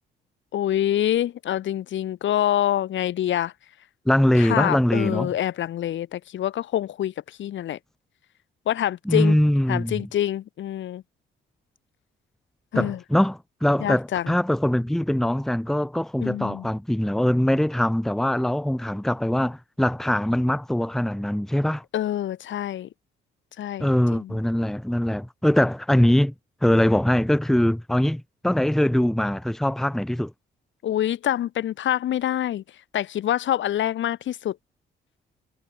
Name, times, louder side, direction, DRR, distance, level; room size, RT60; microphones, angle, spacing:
voice 1, 0.5-3.5 4.3-7.8 8.7-9.4 9.7-11.0 12.7-13.0 13.8-14.4 16.2-16.7 21.9-22.9 23.6-24.4 30.8-32.6 32.9-34.6, left 11 dB, 70° left, 2.3 m, -26 dB
voice 2, 4.1-5.3 9.1-10.1 12.7-21.8 23.8-26.3 26.6-30.3, left 1 dB, ahead, 1.0 m, -22 dB
cardioid pair, 90°, 20 cm